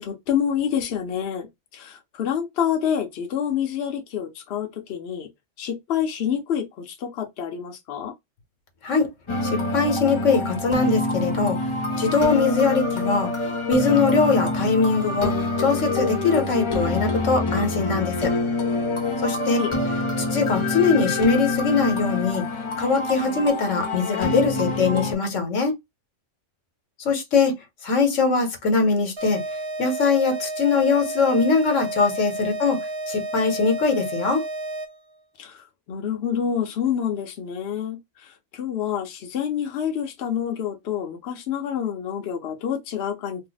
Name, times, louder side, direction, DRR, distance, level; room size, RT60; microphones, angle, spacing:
voice 1, 0.0-1.5 1.7-5.3 5.6-8.1 19.5-19.7 35.4-43.5, left 8 dB, 60° left, 0.8 m, -27 dB
sound 1, 9.3-25.1, left 2 dB, 35° left, 0.5 m, -26 dB
voice 2, 9.4-11.6 12.0-13.3 13.7-15.3 15.6-18.3 19.2-19.6 20.2-22.4 22.8-25.7 27.0-27.5 27.8-29.4 29.8-32.8 33.1-34.4, left 4 dB, 80° left, 1.2 m, -21 dB
sound 2, 29.2-35.1, right 2 dB, 40° right, 0.4 m, -31 dB
2.7 x 2.0 x 3.8 m
omnidirectional pair, 1.3 m